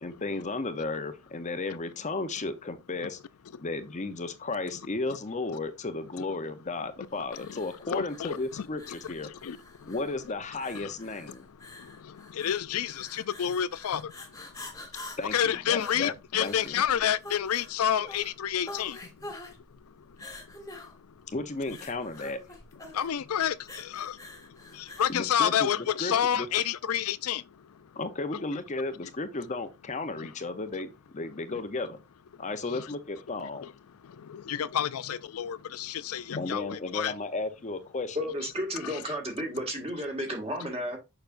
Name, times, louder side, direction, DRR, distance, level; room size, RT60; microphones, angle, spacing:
voice 1, 0.0-3.2 3.6-9.3 9.9-11.5 15.2-16.1 16.4-16.7 21.3-22.4 25.1-26.5 28.0-32.0 32.4-33.7 36.4-38.2, left 3 dB, 35° left, 0.7 m, -34 dB
sound 1, 7.3-25.2, left 2 dB, 15° left, 1.4 m, -46 dB
voice 2, 7.4-8.9 9.2-9.9 10.8-10.9 11.6-14.4 15.3-19.3 19.8-21.1 22.8-28.0 30.2-30.3 31.5-31.6 32.3-32.4 32.7-32.9 33.6-33.7 34.0-37.2 38.8-39.0, left 9 dB, 75° left, 0.4 m, -30 dB
voice 3, 38.2-41.0, equal, 30° right, 1.9 m, -32 dB
6.9 x 5.8 x 2.5 m
head